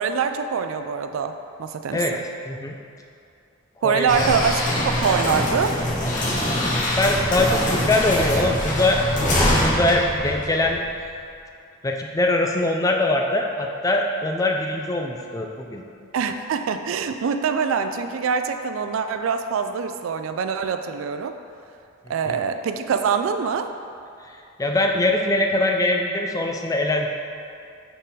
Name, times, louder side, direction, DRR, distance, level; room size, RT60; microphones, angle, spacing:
voice 1, 0.0-1.3 1.6-2.0 3.8-5.8 16.1-21.3 22.1-23.7, right 6 dB, 80° right, 8 dB, 0.3 m, -24 dB
voice 2, 3.8-4.3 7.0-10.8 11.8-15.8 22.3-22.4 24.2-27.1, left 2 dB, 15° left, 2 dB, 0.4 m, -22 dB
sound 1, 4.1-11.0, left 1 dB, 40° left, 0.9 m, -23 dB
6.2 x 3.9 x 4.0 m, 2.5 s
head